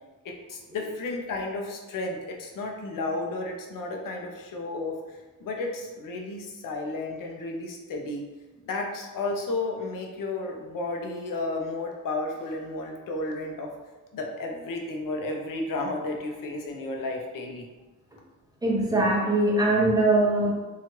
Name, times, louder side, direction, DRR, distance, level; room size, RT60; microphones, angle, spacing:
voice 1, 0.2-8.3 8.6-13.7 14.1-17.7, left 2 dB, 75° left, 1 dB, 0.6 m, -33 dB
voice 2, 18.6-20.5, right 2 dB, 10° right, -4 dB, 0.6 m, -22 dB
2.9 x 2.3 x 2.9 m, 1.2 s
wide cardioid pair, 145°, 33 cm